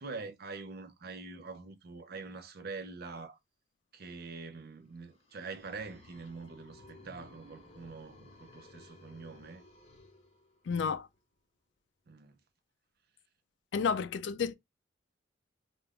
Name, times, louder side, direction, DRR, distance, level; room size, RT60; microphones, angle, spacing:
voice 1, 0.0-3.4 3.9-9.6 12.1-12.4, right 4 dB, 55° right, 0.5 m, -45 dB
sound 1, 4.9-10.8, left 2 dB, 35° left, 0.8 m, -56 dB
voice 2, 10.7-11.1 13.7-14.6, left 6 dB, 65° left, 0.3 m, -31 dB
2.5 x 2.2 x 3.4 m
head